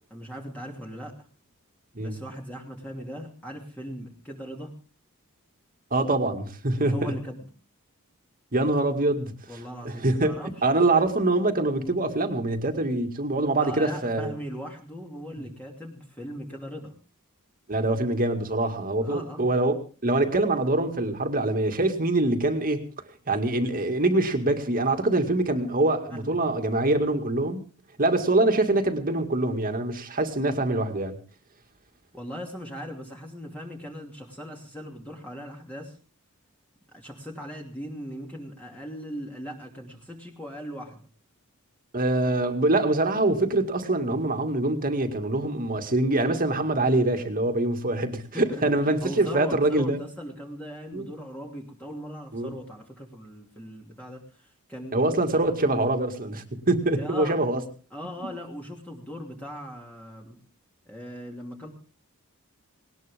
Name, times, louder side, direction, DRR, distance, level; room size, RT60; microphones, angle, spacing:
voice 1, 0.1-1.3 2.0-4.7 6.9-7.5 9.5-10.7 13.6-17.0 19.0-19.5 26.1-26.6 32.1-36.0 36.9-41.0 48.3-55.8 56.9-57.4 57.9-60.4 60.9-61.7, equal, 5° left, -1 dB, 2.7 m, -39 dB
voice 2, 5.9-7.1 8.5-9.3 9.8-10.3 10.6-14.3 17.7-19.7 20.0-22.8 23.3-27.6 28.0-31.2 41.9-50.0 50.9-51.1 52.3-52.5 54.9-57.6, right 2 dB, 40° right, 6 dB, 2.2 m, -24 dB
19.5 x 19.0 x 3.6 m, 0.37 s
head